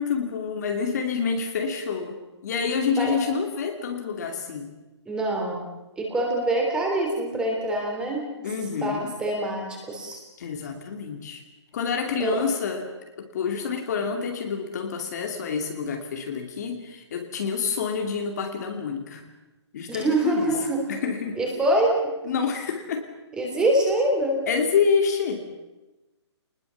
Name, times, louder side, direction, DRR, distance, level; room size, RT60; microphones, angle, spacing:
voice 1, 0.0-2.2 2.4-4.7 8.4-9.1 10.4-11.4 11.7-19.3 19.7-20.5 20.9-21.4 22.2-23.0 24.5-25.4, left 6 dB, 35° left, 4 dB, 2.5 m, -27 dB
voice 2, 5.1-5.6 6.0-8.3 8.8-10.2 12.2-12.4 19.9-20.9 21.4-22.0 23.3-24.4, right 1 dB, 5° right, 0 dB, 3.5 m, -24 dB
26.0 x 20.5 x 7.2 m, 1.1 s
hypercardioid pair, 170°, 15 cm